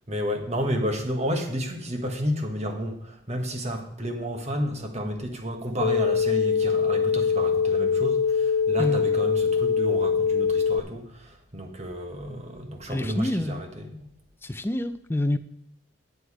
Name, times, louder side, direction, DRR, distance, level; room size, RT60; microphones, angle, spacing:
voice 1, 0.1-14.1, equal, 35° right, 4 dB, 1.4 m, -31 dB
sound 1, 5.8-10.8, left 6 dB, 90° left, 0.4 m, -23 dB
voice 2, 12.9-13.6 14.4-15.4, left 1 dB, 10° left, 11 dB, 0.4 m, -27 dB
10.0 x 8.0 x 4.8 m, 0.71 s
head